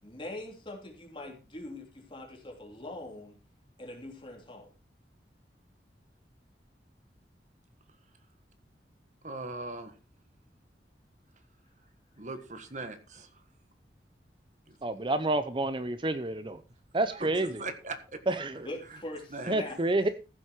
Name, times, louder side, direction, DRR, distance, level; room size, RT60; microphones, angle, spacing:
voice 1, 0.0-3.4 3.8-4.7 17.3-17.6 18.5-19.8, left 1 dB, 30° left, 0 dB, 3.5 m, -42 dB
voice 2, 9.2-9.9 12.2-13.4 14.7-14.8 17.1-18.2 18.8-19.0 19.3-19.5, right 2 dB, 45° right, 9 dB, 1.6 m, -40 dB
voice 3, 14.8-16.6 16.9-17.5 18.3-18.7 19.5-20.1, right 2 dB, 30° right, 11 dB, 0.7 m, -29 dB
15.0 x 7.9 x 4.5 m, 0.32 s
head